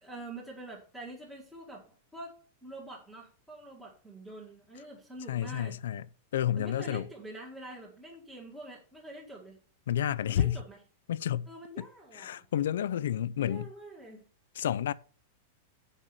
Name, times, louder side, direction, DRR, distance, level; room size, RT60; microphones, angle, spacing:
voice 1, 0.0-1.8 2.1-5.8 6.6-9.6 10.3-10.8 11.5-12.5 13.4-14.3, right 2 dB, 5° right, 2.0 m, -46 dB
voice 2, 5.3-6.0 6.3-7.1 9.9-10.6 11.1-11.5 11.8-11.9 12.1-13.7 14.6-14.9, left 10 dB, 80° left, 0.5 m, -30 dB
8.1 x 5.6 x 7.0 m
supercardioid pair, 165°, 0 cm